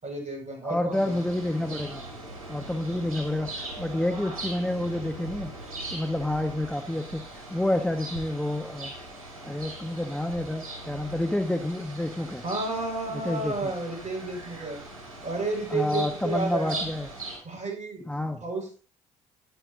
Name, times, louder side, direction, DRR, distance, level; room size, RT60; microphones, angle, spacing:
voice 1, 0.0-1.2 12.4-14.8 15.2-16.8 17.4-18.0 18.4-18.8, right 2 dB, 45° right, 2 dB, 5.9 m, -31 dB
voice 2, 0.6-2.0 2.5-5.5 5.9-7.2 7.5-8.9 9.4-12.4 13.2-13.7 15.7-17.1 18.1-18.4, left 1 dB, 5° left, 4 dB, 1.3 m, -29 dB
sound 1, 0.9-17.4, right 2 dB, 85° right, 3.0 m, -40 dB
11.5 x 9.9 x 2.7 m, 0.39 s
hypercardioid pair, 45°, 17 cm